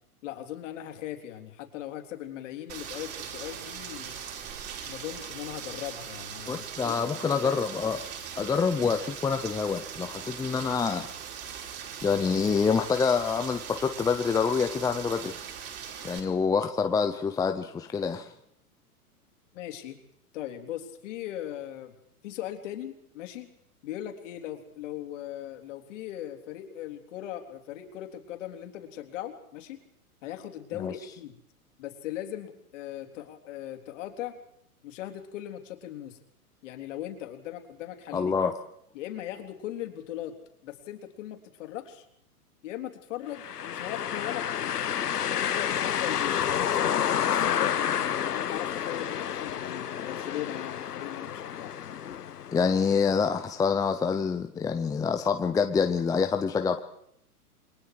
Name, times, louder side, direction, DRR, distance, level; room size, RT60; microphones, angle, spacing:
voice 1, 0.2-4.2 4.8-7.4 19.5-20.0 20.3-21.9 22.2-23.5 23.8-29.8 30.2-31.4 31.8-34.4 34.8-36.2 36.6-38.3 38.9-40.4 40.6-42.1 42.6-44.8 45.4-51.7, left 12 dB, 50° left, 5 dB, 3.7 m, -39 dB
Rain, 2.7-16.2, right 8 dB, 30° right, 5.6 m, -40 dB
voice 2, 6.5-8.0 8.4-11.1 12.0-15.3 16.0-18.3 30.8-30.9 38.1-38.5 52.5-56.8, left 5 dB, 10° left, 6 dB, 0.8 m, -26 dB
sound 1, 43.3-53.1, left 9 dB, 85° left, 0.9 m, -30 dB
29.0 x 22.0 x 4.9 m, 0.71 s
hypercardioid pair, 125°, 46 cm